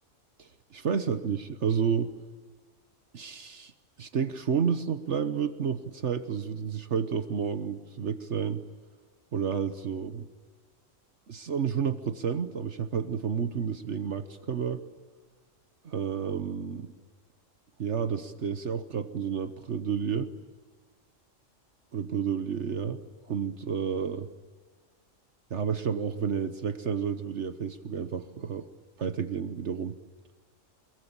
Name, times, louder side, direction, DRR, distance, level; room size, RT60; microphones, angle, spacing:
voice 1, 0.4-2.1 3.1-3.7 4.0-8.6 9.3-10.3 11.3-14.8 15.8-16.9 17.8-20.3 21.9-23.0 23.3-24.3 25.5-28.7 29.0-30.0, right 7 dB, 65° right, 11 dB, 1.4 m, -30 dB
25.5 x 22.5 x 8.9 m, 1.4 s
omnidirectional pair, 1.3 m